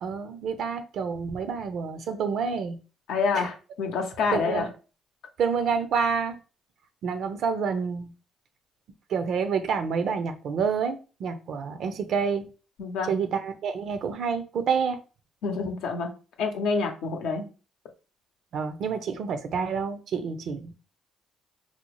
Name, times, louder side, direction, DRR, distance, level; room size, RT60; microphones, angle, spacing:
voice 1, 0.0-2.8 3.3-3.5 4.3-4.7 5.4-6.4 7.0-8.1 9.1-12.5 13.1-15.0 18.5-20.7, right 6 dB, 65° right, 0.5 m, -28 dB
voice 2, 3.1-4.7 12.8-13.1 15.4-16.1 16.4-17.5, left 4 dB, 80° left, 0.6 m, -27 dB
4.1 x 2.0 x 3.0 m
supercardioid pair, 70°, 0 cm